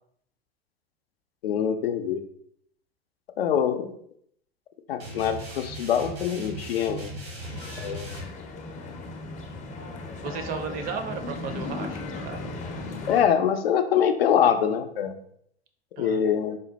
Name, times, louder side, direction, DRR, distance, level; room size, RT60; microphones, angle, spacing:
voice 1, 1.4-2.2 3.4-3.9 4.9-7.1 7.8-8.1 13.1-15.2 16.0-16.6, left 8 dB, 75° left, 8 dB, 0.5 m, -24 dB
sound 1, 5.0-8.2, right 1 dB, 85° right, 1.2 m, -38 dB
sound 2, 7.4-13.2, left 3 dB, 25° left, 0.5 m, -36 dB
voice 2, 10.2-12.5 16.0-16.2, right 6 dB, 30° right, 6 dB, 0.4 m, -35 dB
3.7 x 2.2 x 3.8 m, 0.68 s
figure-of-eight pair, 80°, 31 cm